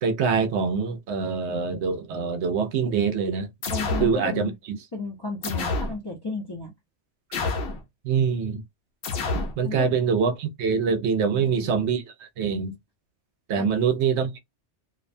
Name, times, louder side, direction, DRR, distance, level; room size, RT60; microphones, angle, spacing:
voice 1, 0.0-3.5 4.0-4.5 8.0-8.6 9.6-12.7 13.5-14.4, right 6 dB, 70° right, 0.8 m, -24 dB
sound 1, 3.6-4.2 5.4-6.0 7.3-7.8 9.0-9.6, left 3 dB, 65° left, 0.9 m, -28 dB
voice 2, 3.7-4.5 4.9-6.7 9.6-9.9 11.3-11.7 13.5-13.8, left 3 dB, 30° left, 0.5 m, -33 dB
2.5 x 2.1 x 2.5 m
omnidirectional pair, 1.2 m